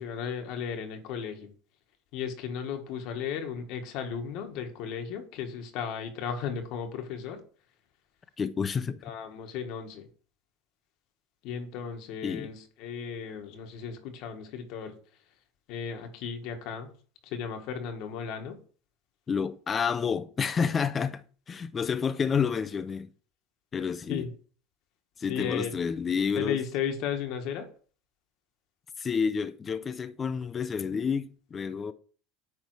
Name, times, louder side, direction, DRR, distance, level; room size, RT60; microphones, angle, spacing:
voice 1, 0.0-1.5 2.1-7.4 9.0-10.0 11.4-14.9 15.7-16.9 17.2-18.6 24.1-24.3 25.3-25.8 26.3-27.7, left 7 dB, 60° left, 1.5 m, -35 dB
voice 2, 8.4-9.0 12.2-12.5 19.3-23.1 23.7-24.3 25.2-26.6 29.0-31.9, left 6 dB, 25° left, 0.6 m, -29 dB
9.4 x 3.4 x 4.7 m
supercardioid pair, 115°, 0 cm